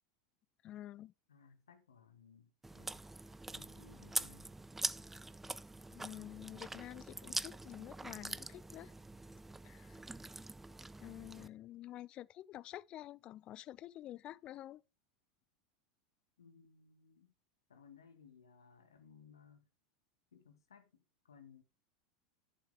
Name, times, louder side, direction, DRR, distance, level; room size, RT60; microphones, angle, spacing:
voice 1, 0.6-1.1 5.9-8.9 9.6-10.0 11.0-14.8, left 13 dB, 40° left, 0.4 m, -49 dB
voice 2, 1.3-3.1 3.5-4.5 16.4-17.3 17.7-19.7 20.3-21.6, left 6 dB, 85° left, 1.9 m, -61 dB
Chewing mastication, 2.6-11.5, right 2 dB, 10° right, 0.5 m, -44 dB
10.5 x 6.7 x 4.9 m
hypercardioid pair, 90°, 2 cm